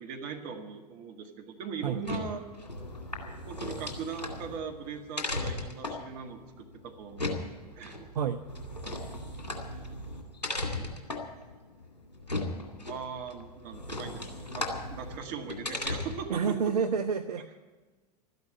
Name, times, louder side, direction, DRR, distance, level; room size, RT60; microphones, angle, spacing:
voice 1, 0.0-2.4 3.5-7.5 7.8-8.1 10.8-11.0 12.8-16.6, right 6 dB, 45° right, 4 dB, 2.0 m, -40 dB
sound 1, 1.9-16.3, left 2 dB, 80° left, 2.3 m, -37 dB
voice 2, 16.3-17.6, right 6 dB, 70° right, 9 dB, 0.7 m, -29 dB
13.0 x 11.0 x 9.1 m, 1.3 s
figure-of-eight pair, 85°, 21 cm